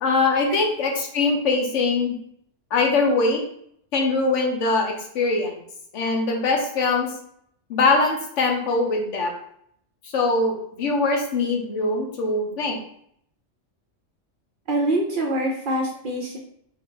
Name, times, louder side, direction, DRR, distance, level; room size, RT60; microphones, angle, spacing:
voice 1, 0.0-2.1 2.7-3.4 3.9-5.6 5.9-7.1 7.7-9.3 10.1-12.8, left 3 dB, 80° left, 2 dB, 1.1 m, -22 dB
voice 2, 14.7-16.4, right 1 dB, 55° right, 0 dB, 0.6 m, -24 dB
3.5 x 2.2 x 3.8 m, 0.69 s
omnidirectional pair, 1.2 m